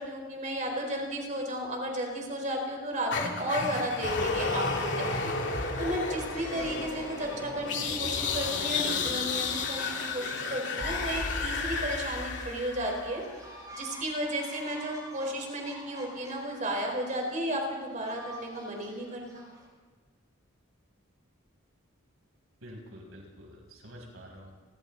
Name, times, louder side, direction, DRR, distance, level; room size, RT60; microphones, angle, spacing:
voice 1, 0.0-5.4 5.8-13.2 13.7-19.4, equal, 35° right, 1 dB, 4.3 m, -33 dB
sound 1, 3.1-13.3, left 4 dB, 55° left, 2.8 m, -32 dB
sound 2, 4.1-19.7, right 1 dB, 20° right, 5.8 m, -48 dB
voice 2, 22.6-24.5, equal, 85° right, -1 dB, 7.2 m, -47 dB
29.5 x 23.0 x 4.0 m, 1.4 s
head